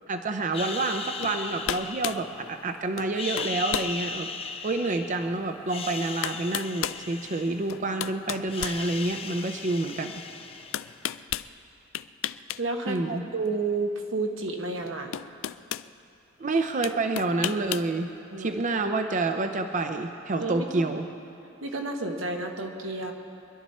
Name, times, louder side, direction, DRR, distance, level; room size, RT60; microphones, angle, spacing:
voice 1, 0.1-4.3 4.6-10.1 12.9-13.2 16.4-18.1 18.4-21.0, right 2 dB, 40° right, 6 dB, 0.6 m, -28 dB
sound 1, 0.5-2.7 3.1-5.3 5.6-8.0 8.3-11.1, left 5 dB, 30° left, 0.7 m, -37 dB
sound 2, 1.2-1.4 1.7-2.2 3.0-3.1 3.4-3.9 4.5-4.6 5.7-5.8 6.2-7.0 7.7-9.4 10.7-11.5 11.9-12.6 12.9-13.1 14.5-14.6 15.1-15.9 16.8-17.9, left 11 dB, 85° left, 0.4 m, -32 dB
voice 2, 12.6-15.2 18.3-18.6 20.4-20.9 21.6-23.1, right 3 dB, 90° right, 2 dB, 1.5 m, -31 dB
24.5 x 11.5 x 4.3 m, 2.7 s
head